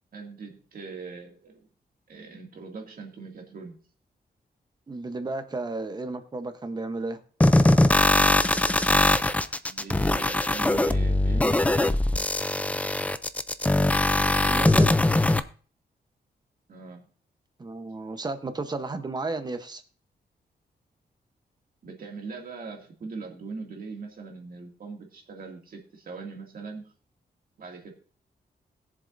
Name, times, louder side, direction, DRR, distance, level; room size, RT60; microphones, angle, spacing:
voice 1, 0.1-1.6 2.1-3.8 9.6-12.3 16.7-17.0 21.8-26.9 27.6-27.9, right 4 dB, 60° right, 1 dB, 2.3 m, -41 dB
voice 2, 4.9-7.2 14.5-14.9 17.6-19.8, right 3 dB, 25° right, 9 dB, 0.9 m, -33 dB
sound 1, 7.4-15.4, left 2 dB, 10° left, 0.4 m, -21 dB
20.5 x 7.3 x 2.6 m, 0.42 s
wide cardioid pair, 165°, 17 cm